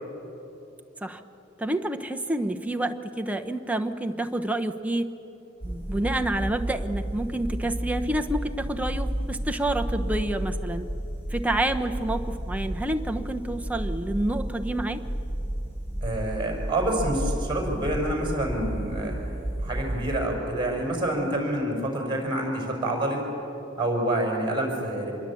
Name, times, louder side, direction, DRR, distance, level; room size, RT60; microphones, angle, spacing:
voice 1, 1.6-5.1 5.6-10.8 11.3-15.0, right 1 dB, 5° right, 5 dB, 1.0 m, -28 dB
sound 1, 5.6-20.2, right 1 dB, 10° left, 1.6 m, -32 dB
voice 2, 16.0-19.2 19.6-23.2 23.8-25.1, right 1 dB, 25° right, 1 dB, 5.6 m, -27 dB
26.5 x 22.0 x 8.6 m, 2.9 s
head